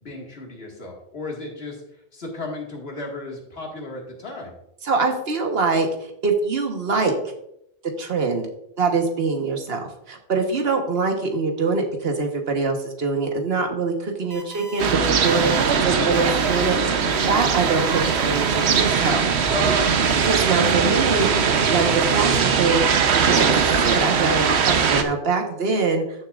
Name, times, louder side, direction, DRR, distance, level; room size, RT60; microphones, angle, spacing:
voice 1, 0.0-4.6 17.0-17.3 19.5-19.9, left 3 dB, 70° left, 0 dB, 2.1 m, -34 dB
voice 2, 4.8-7.1 8.0-8.5 8.8-9.8 10.1-17.0 17.3-19.5 20.2-22.9 23.1-26.0, right 4 dB, 70° right, 3 dB, 1.4 m, -24 dB
sound 1, 14.3-14.9 15.2-15.8 16.1-16.7 17.1-19.4, right 2 dB, 40° right, 1.1 m, -40 dB
sound 2, 14.8-25.0, right 6 dB, 90° right, 1.1 m, -20 dB
13.5 x 6.7 x 2.4 m, 0.78 s
omnidirectional pair, 1.1 m